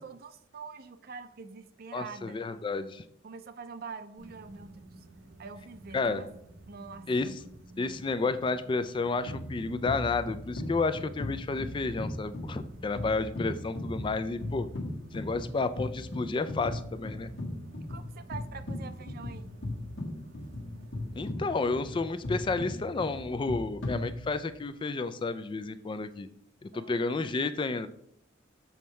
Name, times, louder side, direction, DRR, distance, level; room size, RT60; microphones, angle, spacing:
voice 1, 0.0-2.4 3.2-5.0 5.4-6.3 6.7-7.4 17.9-19.6 26.7-27.3, right 5 dB, 50° right, 11 dB, 0.5 m, -45 dB
voice 2, 1.9-3.0 5.9-6.2 7.1-7.3 7.8-14.7 15.1-17.3 21.2-26.3 26.6-27.9, left 3 dB, 25° left, 11 dB, 0.3 m, -31 dB
sound 1, 4.2-21.3, right 1 dB, 75° right, 0.8 m, -52 dB
sound 2, 9.3-24.6, left 1 dB, 75° left, 1.2 m, -38 dB
7.1 x 3.1 x 5.6 m, 0.72 s
head